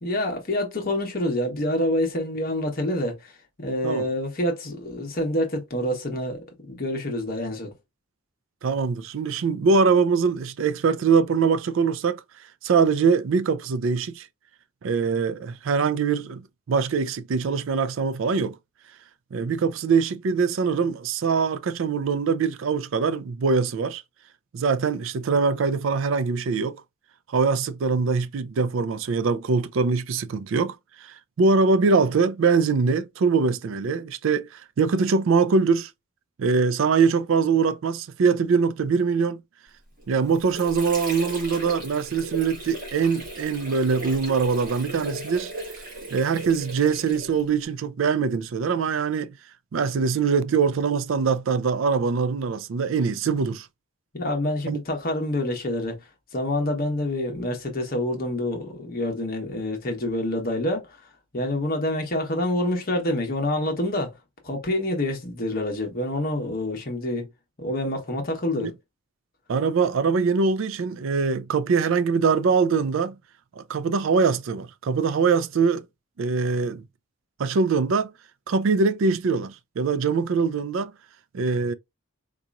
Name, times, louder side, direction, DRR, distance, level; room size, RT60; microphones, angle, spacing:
voice 1, 0.0-7.7 54.1-56.0 56.3-61.0 61.3-64.1 64.4-67.3 67.6-68.7, left 1 dB, 45° left, 1.1 m, -27 dB
voice 2, 8.6-12.2 12.6-14.3 14.8-16.4 16.7-18.6 19.3-24.0 24.5-26.8 27.3-35.9 36.4-39.4 40.1-45.5 46.1-49.4 49.7-53.7 54.7-54.8 68.5-68.7 69.5-73.2 73.6-75.8 76.2-76.8 77.4-78.1 78.5-80.9 81.3-81.7, right 5 dB, 65° right, 0.4 m, -23 dB
Water / Sink (filling or washing), 40.0-47.6, right 2 dB, 40° right, 1.9 m, -37 dB
4.0 x 2.9 x 2.4 m
head